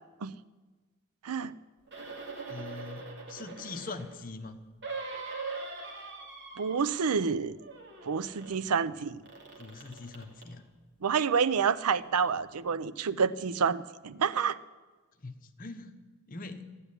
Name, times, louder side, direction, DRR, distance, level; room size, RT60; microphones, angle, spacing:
sound 1, 1.9-4.2 4.8-7.3 7.6-8.6 9.2-10.5 11.2-11.3, right 4 dB, 50° right, 2.5 m, -42 dB
voice 1, 2.5-4.6 9.6-10.7 15.2-15.9 16.3-16.7, left 3 dB, 40° left, 7 dB, 1.0 m, -42 dB
voice 2, 6.6-7.6 8.0-9.2 11.0-14.6, right 6 dB, 90° right, 17 dB, 0.6 m, -28 dB
13.0 x 10.0 x 9.9 m, 1.3 s
head